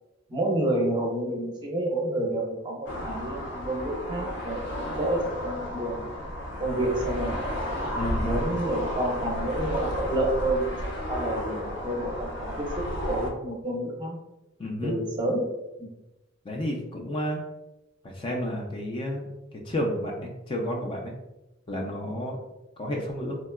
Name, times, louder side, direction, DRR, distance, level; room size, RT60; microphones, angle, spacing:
voice 1, 0.3-6.1 6.6-7.4 8.2-10.7 11.1-14.2 14.8-15.4 15.8-15.9, right 1 dB, 25° right, -1 dB, 0.5 m, -29 dB
sound 1, 2.9-13.3, equal, 60° left, 0.6 m, -32 dB
voice 2, 7.9-8.3 14.6-14.9 16.5-17.4 18.0-19.3 19.6-21.1 21.7-22.4 22.8-23.4, equal, 25° left, 0 dB, 0.3 m, -31 dB
3.5 x 2.2 x 2.2 m, 0.99 s
head